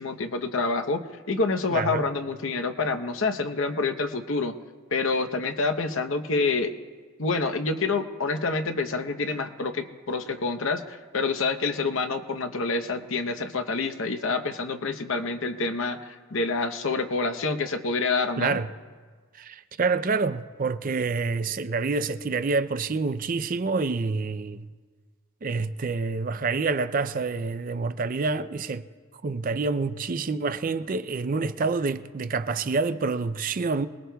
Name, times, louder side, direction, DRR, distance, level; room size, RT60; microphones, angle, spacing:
voice 1, 0.0-4.5 4.9-6.7 7.2-18.6, left 3 dB, 60° left, 0.8 m, -27 dB
voice 2, 1.7-2.1 18.4-18.7 19.4-24.7 25.4-28.9 29.2-33.9, right 4 dB, 40° right, 0.4 m, -27 dB
26.5 x 20.0 x 2.3 m
head